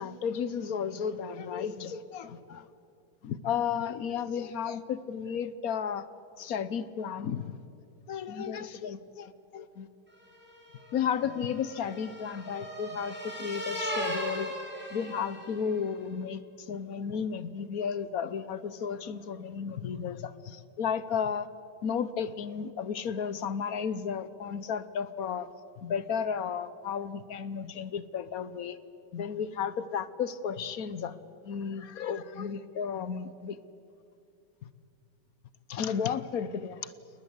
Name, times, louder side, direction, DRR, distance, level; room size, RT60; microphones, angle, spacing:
voice 1, 0.0-2.7 3.2-6.1 6.4-7.5 8.1-9.9 10.9-14.5 14.9-21.5 21.8-28.8 29.1-31.2 31.4-33.6 34.6-34.7 35.7-36.9, left 7 dB, 55° left, 14 dB, 1.1 m, -33 dB
sound 1, 10.3-15.8, equal, 5° right, 4.7 m, -38 dB
29.0 x 20.0 x 8.1 m, 2.6 s
omnidirectional pair, 2.2 m